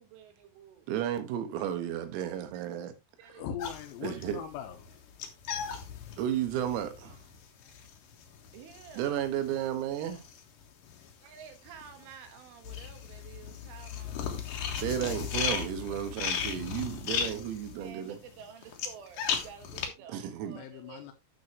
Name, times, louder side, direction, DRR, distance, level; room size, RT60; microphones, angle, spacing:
voice 1, 0.0-0.9 3.2-3.5 7.6-7.7 8.5-9.2 11.2-14.5 17.7-21.1, right 8 dB, 75° right, 3.7 m, -51 dB
voice 2, 0.9-2.9 4.0-4.4 6.2-7.2 9.0-10.2 14.8-18.2 20.1-20.6, right 10 dB, 90° right, 4.1 m, -33 dB
voice 3, 3.4-4.9 20.5-21.1, left 9 dB, 90° left, 3.9 m, -40 dB
sound 1, 3.6-11.1 11.4-19.9, left 7 dB, 65° left, 2.2 m, -36 dB
10.5 x 7.0 x 3.1 m
omnidirectional pair, 6.0 m